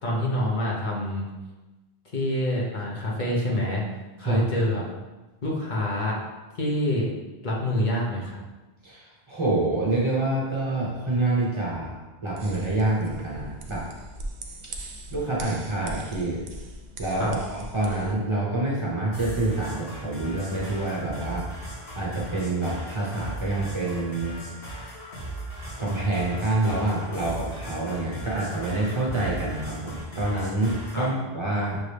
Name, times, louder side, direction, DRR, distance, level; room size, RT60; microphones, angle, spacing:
voice 1, 0.0-1.3 2.1-3.8 4.2-4.8 5.4-6.2 6.6-7.1 7.4-8.4 17.2-17.4 30.9-31.1, left 1 dB, 50° left, -4 dB, 0.9 m, -26 dB
voice 2, 8.8-13.9 15.1-16.4 17.0-21.7 21.9-24.4 25.8-31.8, right 2 dB, 30° right, -5 dB, 0.9 m, -27 dB
sound 1, 12.4-18.2, right 1 dB, 55° right, 0.6 m, -40 dB
sound 2, 19.1-31.1, right 1 dB, 70° left, 1.4 m, -38 dB
6.3 x 2.6 x 3.2 m, 1.2 s
omnidirectional pair, 1.0 m